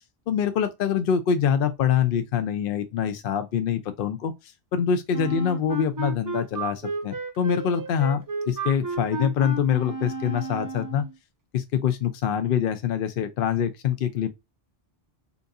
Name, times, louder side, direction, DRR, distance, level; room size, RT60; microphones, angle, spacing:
voice 1, 0.3-11.1 11.5-14.3, left 8 dB, 65° left, 0.7 m, -25 dB
Wind instrument woodwind instrument, 5.1-11.2, right 4 dB, 30° right, 0.4 m, -33 dB
3.8 x 2.4 x 2.6 m
omnidirectional pair, 1.0 m